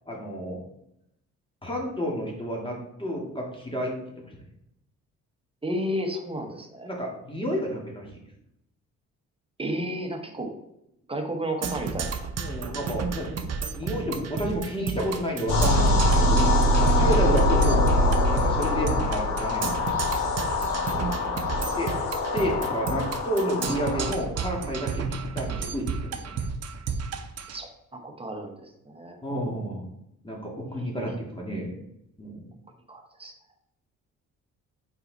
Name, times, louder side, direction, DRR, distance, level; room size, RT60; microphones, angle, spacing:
voice 1, 0.1-0.6 1.6-3.9 6.8-8.2 10.4-10.5 11.3-11.4 12.4-13.3 13.7-16.5 16.8-17.9 18.3-19.8 21.8-21.9 22.3-26.4 29.2-29.9 30.2-31.7 32.2-32.5, equal, 15° left, -1 dB, 2.2 m, -30 dB
voice 2, 5.6-6.9 9.6-10.5 11.1-12.3 17.3-17.5 21.0-21.2 21.5-21.6 27.5-29.2 32.9-33.3, equal, 20° right, 3 dB, 1.3 m, -33 dB
Percussion, 11.6-27.6, right 5 dB, 55° right, 0.8 m, -32 dB
sound 1, 15.5-24.1, left 1 dB, 85° left, 2.0 m, -23 dB
5.6 x 4.6 x 4.1 m, 0.80 s
cardioid pair, 75°, 30 cm